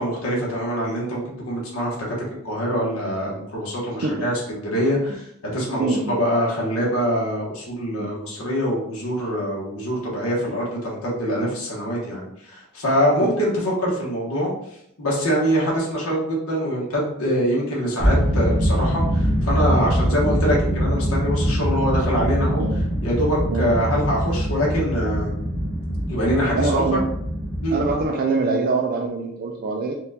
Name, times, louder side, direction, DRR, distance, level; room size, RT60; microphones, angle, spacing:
voice 1, 0.0-2.2 2.4-5.3 5.5-14.5 15.0-22.6 23.0-25.4 26.1-26.8 27.6-27.8, equal, 70° left, -4 dB, 1.1 m, -24 dB
voice 2, 5.8-6.2 8.0-8.1 13.1-13.3 22.6-22.8 23.5-23.7 26.5-27.1 27.7-29.9, right 3 dB, 45° right, 0 dB, 0.4 m, -24 dB
sound 1, 18.0-28.0, equal, 5° left, 1.0 m, -23 dB
4.3 x 2.3 x 2.7 m, 0.74 s
head